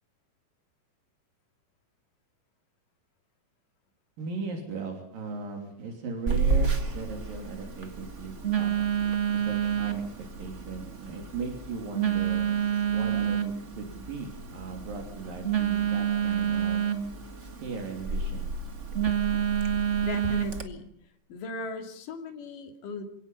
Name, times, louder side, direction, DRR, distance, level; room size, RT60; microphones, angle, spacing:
voice 1, 4.2-8.7 9.3-10.0 10.4-12.5 12.9-16.8 17.6-18.5, right 4 dB, 80° right, 2 dB, 4.8 m, -37 dB
Telephone, 6.3-20.6, right 7 dB, 30° right, 1.4 m, -28 dB
voice 2, 20.0-20.9 21.3-23.0, left 3 dB, 70° left, 3 dB, 4.1 m, -37 dB
27.5 x 17.5 x 5.6 m, 0.74 s
omnidirectional pair, 3.9 m